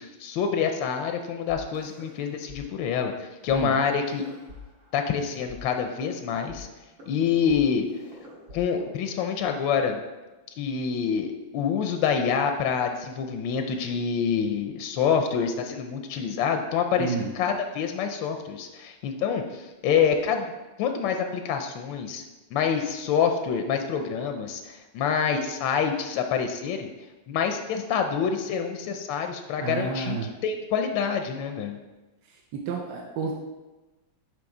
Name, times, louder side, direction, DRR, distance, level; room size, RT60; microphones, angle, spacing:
voice 1, 0.0-4.2 4.9-6.7 7.1-7.8 8.5-10.0 10.6-20.5 20.8-22.2 22.5-26.9 27.3-30.2 30.4-31.8, left 7 dB, 85° left, 5 dB, 1.3 m, -26 dB
sound 1, 1.5-2.6 2.9-3.1 3.5-3.6 4.1-5.1 5.5-9.5, left 2 dB, 85° right, 2.2 m, -47 dB
voice 2, 17.0-17.3 29.6-30.3 32.2-33.4, right 4 dB, 70° right, 0 dB, 1.1 m, -30 dB
7.7 x 3.2 x 4.8 m, 1.1 s
omnidirectional pair, 2.0 m